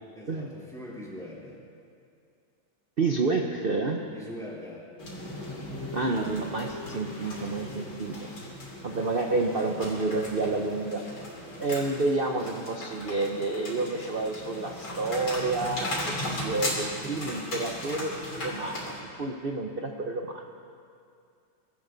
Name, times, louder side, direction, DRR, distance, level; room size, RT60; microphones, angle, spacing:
voice 1, 0.2-1.6 4.1-4.9 11.4-11.9, left 1 dB, ahead, -6 dB, 3.5 m, -43 dB
voice 2, 3.0-4.0 5.9-8.1 8.8-11.0 11.6-18.9 19.2-20.4, right 3 dB, 80° right, 2 dB, 0.5 m, -29 dB
sound 1, 5.0-19.0, left 1 dB, 70° left, 3.9 m, -37 dB
23.5 x 12.5 x 4.0 m, 2.3 s
omnidirectional pair, 2.2 m